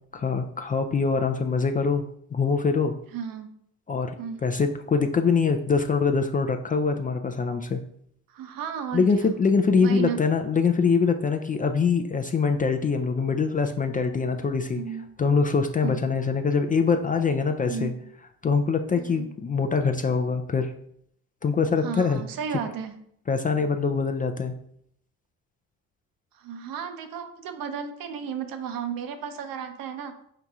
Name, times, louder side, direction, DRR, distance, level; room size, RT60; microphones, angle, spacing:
voice 1, 0.1-2.0 2.3-2.9 3.9-4.1 4.4-7.8 8.9-14.8 15.2-17.9 18.4-20.7 21.4-22.2 23.3-24.5, left 5 dB, 25° left, 5 dB, 0.3 m, -24 dB
voice 2, 3.1-3.5 4.2-4.4 8.3-9.3 9.8-10.2 14.7-15.0 15.8-16.0 17.7-18.0 19.0-19.3 21.8-22.9 26.3-30.1, right 7 dB, 60° right, 8 dB, 0.7 m, -33 dB
4.5 x 2.8 x 3.5 m, 0.70 s
hypercardioid pair, 60°, 39 cm